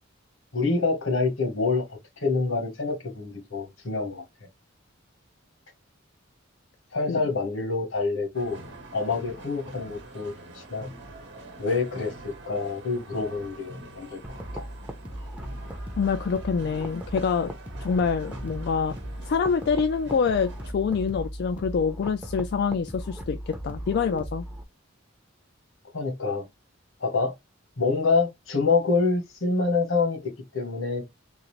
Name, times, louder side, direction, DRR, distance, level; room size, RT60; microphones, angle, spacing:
voice 1, 0.5-1.8 2.2-4.2 6.9-8.6 8.9-10.9 11.6-14.2 14.5-14.7 25.9-26.4 27.0-27.3 27.8-31.0, left 4 dB, 80° left, 1.3 m, -26 dB
sound 1, 8.3-20.7, right 1 dB, 60° right, 0.9 m, -45 dB
sound 2, 14.2-24.6, equal, 5° right, 0.6 m, -37 dB
voice 2, 16.0-17.5 17.8-19.0 19.3-24.4, left 5 dB, 55° left, 0.3 m, -26 dB
3.8 x 2.5 x 3.1 m
head